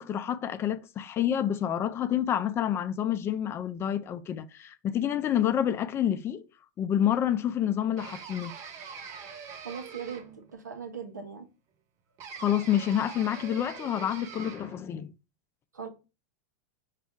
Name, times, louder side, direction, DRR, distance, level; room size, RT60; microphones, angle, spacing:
voice 1, 0.0-6.5 6.8-8.5 12.4-15.1, left 10 dB, 30° left, 0.4 m, -28 dB
sound 1, 8.0-10.5 12.2-14.8, right 6 dB, 40° right, 0.9 m, -43 dB
voice 2, 9.6-11.5 15.7-15.9, right 6 dB, 90° right, 0.8 m, -39 dB
5.0 x 2.4 x 3.6 m
hypercardioid pair, 100°, 9 cm